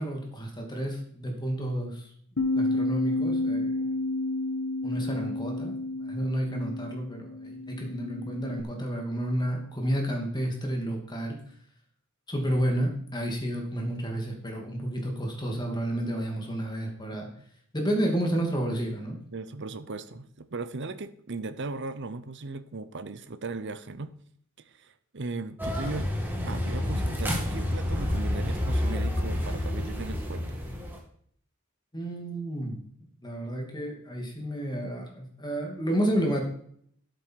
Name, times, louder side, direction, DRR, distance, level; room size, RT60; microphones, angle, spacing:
voice 1, 0.0-2.1 2.5-3.8 4.8-11.4 12.3-17.3 17.7-19.2 31.9-32.8 33.2-36.4, right 1 dB, 20° left, 1 dB, 2.5 m, -31 dB
Bass guitar, 2.4-8.6, left 2 dB, 85° left, 1.4 m, -30 dB
voice 2, 19.3-24.1 24.7-26.1 26.5-30.5, right 3 dB, 55° right, 12 dB, 0.8 m, -37 dB
sound 1, 25.6-31.0, left 1 dB, 10° right, 2.3 m, -29 dB
12.5 x 8.1 x 4.7 m, 0.63 s
head